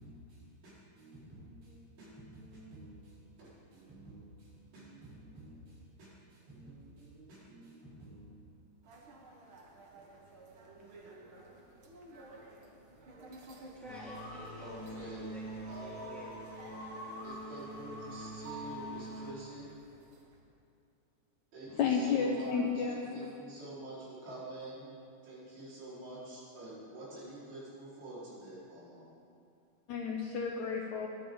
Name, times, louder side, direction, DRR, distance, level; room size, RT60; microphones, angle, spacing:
voice 1, 0.0-8.4 14.6-15.3 15.7-16.3 17.2-19.7 21.5-25.0 25.2-29.1, right 1 dB, 85° right, 6.5 m, -48 dB
sound 1, 8.8-20.4, right 1 dB, 60° right, 1.4 m, -52 dB
voice 2, 13.3-14.7 15.3-16.4, equal, ahead, 2.7 m, -52 dB
sound 2, 13.8-19.3, right 1 dB, 45° left, 2.5 m, -44 dB
voice 3, 21.8-23.3 29.9-31.1, left 5 dB, 75° left, 1.8 m, -32 dB
21.5 x 11.5 x 3.9 m
omnidirectional pair, 4.2 m